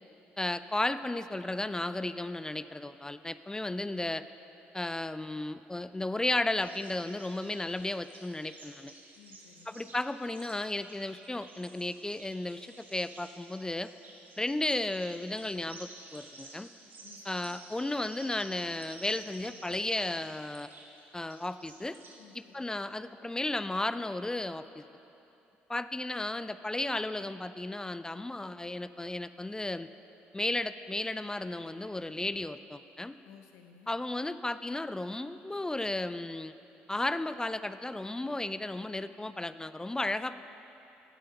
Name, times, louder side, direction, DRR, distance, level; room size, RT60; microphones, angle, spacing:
voice 1, 0.4-4.2 4.7-8.9 9.7-13.9 14.4-16.7 17.2-20.7 21.1-22.0 22.3-24.8 25.7-29.9 30.3-33.2 33.9-36.5 36.9-40.4, left 2 dB, 10° left, 13 dB, 0.4 m, -34 dB
sound 1, 6.6-22.2, right 2 dB, 40° right, 1.8 m, -53 dB
voice 2, 9.2-9.9 17.0-17.5 22.2-22.7 33.2-33.9, left 7 dB, 65° left, 5 dB, 0.9 m, -56 dB
13.5 x 9.0 x 5.4 m, 2.9 s
figure-of-eight pair, 50°, 5 cm